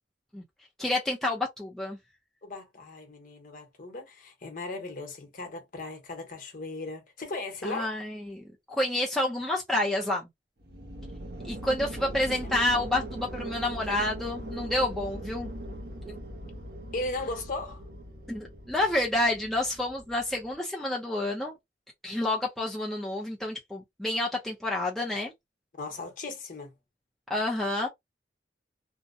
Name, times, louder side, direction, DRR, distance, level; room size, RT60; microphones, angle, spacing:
voice 1, 0.8-2.0 7.6-10.3 11.4-15.5 18.3-21.5 22.0-25.3 27.3-27.9, left 1 dB, ahead, 0.5 m, -29 dB
voice 2, 2.4-7.9 12.0-12.6 16.9-17.8 25.8-26.7, left 2 dB, 50° left, 0.9 m, -37 dB
sound 1, 10.6-20.5, right 1 dB, 65° right, 0.8 m, -40 dB
2.7 x 2.1 x 2.5 m
head